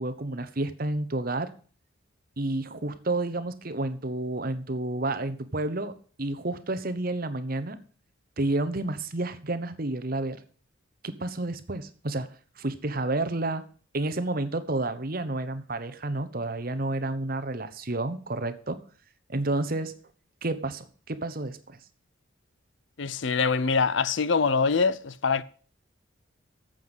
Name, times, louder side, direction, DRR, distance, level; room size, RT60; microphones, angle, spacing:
voice 1, 0.0-1.5 2.4-7.8 8.4-10.4 11.0-12.3 12.6-13.6 13.9-18.8 19.3-19.9 20.4-21.8, right 2 dB, 45° right, 1.0 m, -30 dB
voice 2, 23.0-25.4, left 5 dB, 65° left, 0.6 m, -24 dB
9.3 x 7.8 x 8.1 m
head